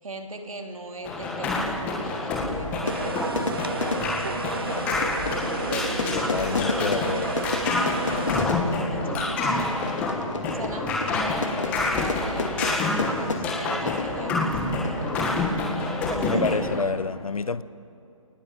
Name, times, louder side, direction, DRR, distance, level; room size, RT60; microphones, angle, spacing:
voice 1, 0.0-9.8 10.5-15.6 16.0-16.8, right 2 dB, 75° right, 3 dB, 3.5 m, -38 dB
sound 1, 1.0-16.8, left 2 dB, 10° left, 1.6 m, -28 dB
Fire / Fireworks, 2.0-16.0, left 4 dB, 60° left, 2.3 m, -33 dB
sound 2, 2.8-8.5, right 5 dB, 40° right, 0.6 m, -33 dB
voice 2, 6.1-7.3 16.2-17.6, left 4 dB, 80° left, 16 dB, 1.1 m, -28 dB
29.5 x 19.0 x 8.0 m, 2.6 s
hypercardioid pair, 175°, 18 cm